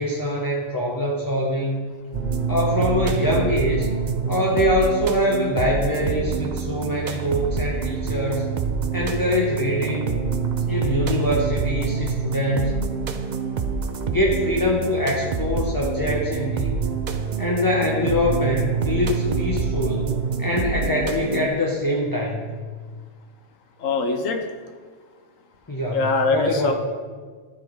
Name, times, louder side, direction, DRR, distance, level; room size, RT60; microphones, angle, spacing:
voice 1, 0.0-1.9 2.5-3.9 4.3-8.5 8.9-10.2 10.7-12.9 14.1-16.9 17.4-20.1 20.4-22.5 25.7-26.7, left 1 dB, 20° left, -2 dB, 0.7 m, -24 dB
sound 1, 2.1-21.5, right 5 dB, 55° right, 0.5 m, -26 dB
voice 2, 23.8-24.4 25.9-26.7, left 3 dB, 90° left, 5 dB, 1.2 m, -22 dB
13.0 x 4.9 x 3.6 m, 1.5 s
omnidirectional pair, 1.3 m